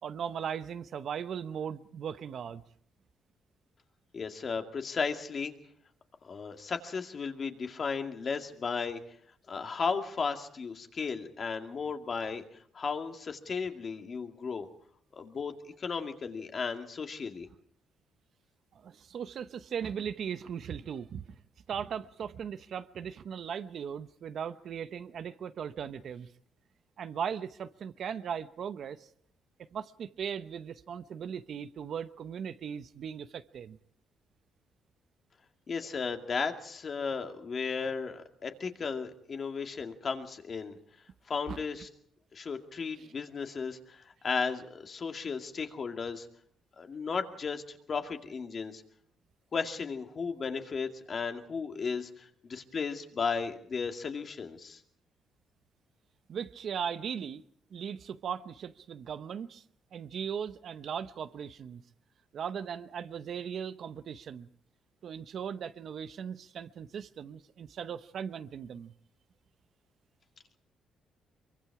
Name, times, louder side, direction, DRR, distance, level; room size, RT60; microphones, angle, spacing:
voice 1, 0.0-2.6 18.7-21.2 21.7-26.3 27.0-29.1 29.6-33.8 41.5-41.6 43.0-43.1 56.3-57.4 57.7-59.6 59.9-61.8 62.3-64.5 65.0-68.9, right 7 dB, 60° right, 0.9 m, -38 dB
voice 2, 4.1-5.5 6.2-9.0 9.5-12.4 12.7-14.7 15.1-17.5 35.7-40.7 41.3-41.9 42.3-46.3 46.8-48.8 49.5-54.8, left 5 dB, 45° left, 2.3 m, -35 dB
23.5 x 23.5 x 4.8 m
cardioid pair, 90°, 0 cm